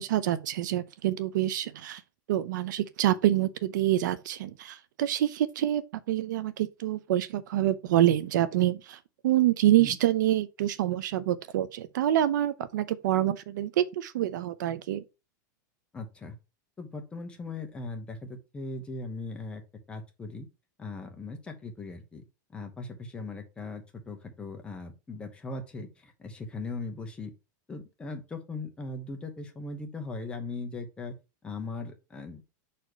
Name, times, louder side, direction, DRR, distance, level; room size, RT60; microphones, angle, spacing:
voice 1, 0.0-2.0 2.3-5.8 6.1-15.0, right 13 dB, 75° right, 0.7 m, -26 dB
voice 2, 15.9-16.3 16.8-19.6 19.9-20.5 20.8-22.2 22.5-27.3 27.7-31.1 31.4-32.4, left 3 dB, 10° left, 1.0 m, -39 dB
6.1 x 4.3 x 4.9 m
supercardioid pair, 165°, 10 cm